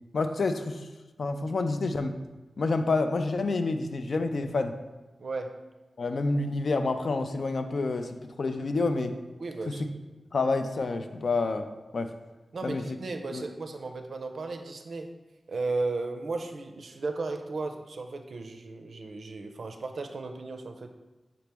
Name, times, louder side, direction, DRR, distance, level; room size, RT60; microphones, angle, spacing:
voice 1, 0.1-0.8 1.2-2.2 2.6-4.7 6.0-9.2 9.7-9.8 10.3-11.7 11.9-12.1 12.6-12.8 13.3-13.4, left 3 dB, 70° left, 7 dB, 0.3 m, -28 dB
voice 2, 5.2-5.6 9.4-9.8 12.5-15.1 15.5-20.9, right 3 dB, 75° right, 5 dB, 0.4 m, -35 dB
5.0 x 2.9 x 3.4 m, 1.1 s
cardioid pair, 45°, 0 cm